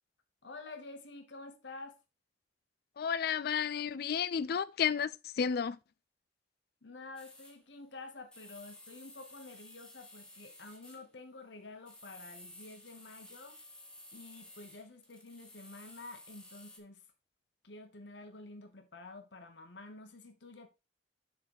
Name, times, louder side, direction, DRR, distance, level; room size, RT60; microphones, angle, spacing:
voice 1, 0.4-2.0 6.8-13.6 14.1-17.0 17.6-20.7, left 3 dB, 85° left, 1.1 m, -49 dB
voice 2, 3.0-5.8, left 7 dB, 60° left, 0.4 m, -32 dB
sound 1, 7.2-7.6 8.3-11.0 11.9-16.8, left 1 dB, 5° left, 1.2 m, -54 dB
7.3 x 3.9 x 4.7 m
head